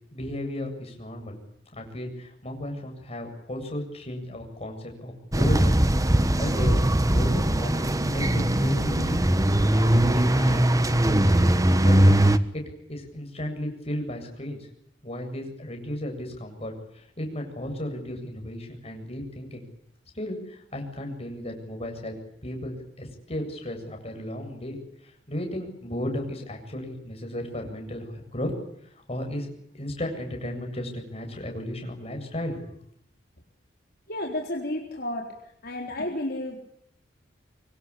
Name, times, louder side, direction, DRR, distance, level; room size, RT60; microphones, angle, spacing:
voice 1, 0.1-1.4 1.7-5.8 6.4-9.2 9.6-10.6 10.9-11.5 11.8-12.2 12.5-12.6 12.9-14.7 15.0-19.7 20.1-22.1 22.4-24.8 25.0-28.5 28.8-32.8, left 1 dB, 35° left, 3 dB, 7.9 m, -34 dB
sound 1, 5.3-12.4, right 1 dB, 20° right, 1.3 m, -20 dB
voice 2, 34.1-35.4 35.6-36.6, left 1 dB, 55° left, 0 dB, 4.1 m, -31 dB
25.5 x 24.5 x 8.5 m, 0.73 s
head